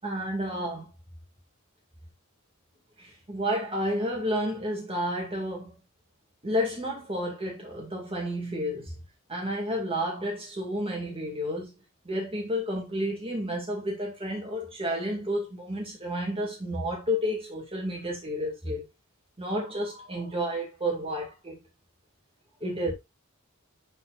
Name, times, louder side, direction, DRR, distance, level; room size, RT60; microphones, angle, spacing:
voice 1, 0.0-0.9 3.0-5.7 6.4-8.9 9.3-11.7 12.0-18.8 19.4-21.6 22.6-22.9, equal, 25° right, 2.3 m, -31 dB
11.5 x 4.5 x 2.5 m
head